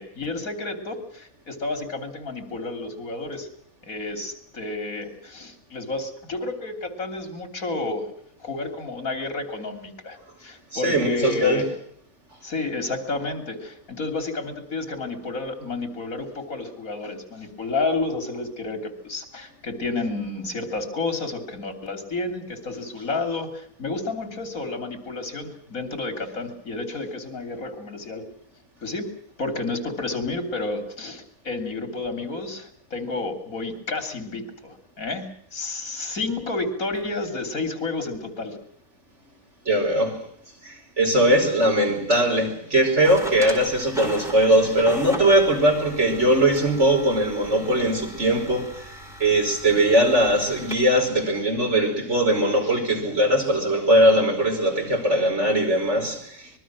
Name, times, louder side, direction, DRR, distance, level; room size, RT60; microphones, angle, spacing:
voice 1, 0.0-3.5 3.8-8.1 8.4-11.7 12.4-28.3 28.8-29.1 29.4-38.6, left 3 dB, 80° left, 3.7 m, -31 dB
voice 2, 10.7-11.6 39.7-40.2 40.6-48.8 49.2-56.6, right 1 dB, 55° right, 5.5 m, -20 dB
sound 1, 43.0-50.7, equal, ahead, 4.7 m, -38 dB
25.5 x 21.5 x 6.2 m
omnidirectional pair, 1.4 m